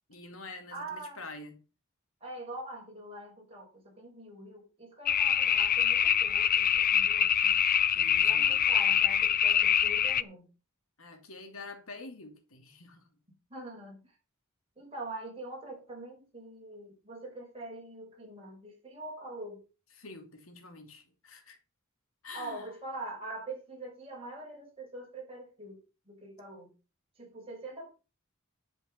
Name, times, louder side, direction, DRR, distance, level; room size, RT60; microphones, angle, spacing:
voice 1, 0.1-1.6 7.9-8.7 11.0-13.1 19.9-21.6 22.2-22.7, left 3 dB, 80° left, 2.7 m, -47 dB
voice 2, 0.7-1.2 2.2-7.7 8.2-10.5 13.5-14.0 14.8-19.6 22.3-26.7 27.2-27.9, right 2 dB, 30° right, 6.3 m, -44 dB
sound 1, 5.1-10.2, left 9 dB, 45° left, 0.6 m, -25 dB
10.5 x 7.9 x 5.7 m
head